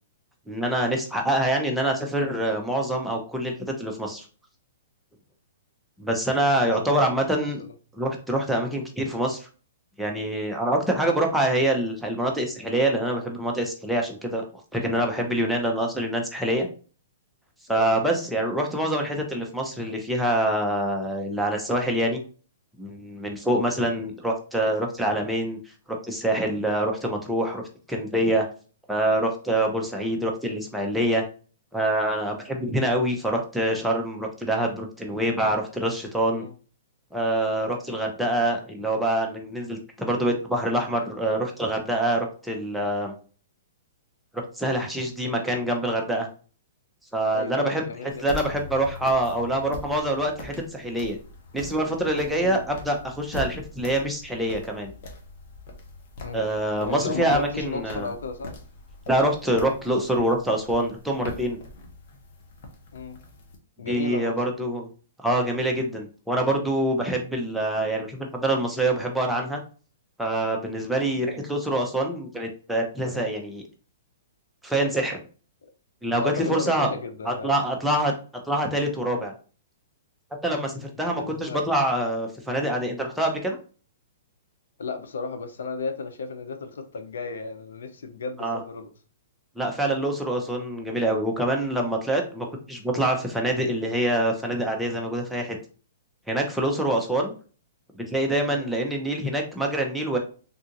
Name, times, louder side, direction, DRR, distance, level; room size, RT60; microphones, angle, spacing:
voice 1, 0.5-4.3 6.0-7.6 8.0-9.5 10.0-14.4 14.7-16.7 17.7-22.2 22.8-25.6 25.9-27.6 27.9-28.5 28.9-31.2 31.7-36.4 37.1-43.1 44.3-46.3 47.1-47.8 48.2-51.2 51.5-54.9 56.3-58.1 59.1-61.6 63.9-64.9 65.2-69.6 70.2-73.6 74.6-75.2 76.0-76.9 77.2-78.1 78.4-79.3 80.4-83.6 88.4-88.6 89.6-95.6 96.3-97.3 97.9-100.2, right 1 dB, ahead, 0 dB, 0.6 m, -25 dB
voice 2, 7.3-7.7 17.7-18.1 36.3-36.5 45.2-45.6 47.3-48.3 52.4-52.6 56.2-56.4 56.8-58.6 62.9-63.2 63.8-64.3 71.3-71.4 75.6-75.7 76.2-77.5 81.2-81.6 84.8-88.9 98.5-98.7, left 4 dB, 80° left, 8 dB, 0.6 m, -34 dB
sound 1, 48.1-63.6, left 3 dB, 50° left, 0.9 m, -42 dB
3.6 x 2.4 x 2.8 m, 0.38 s
hypercardioid pair, 145°, 0 cm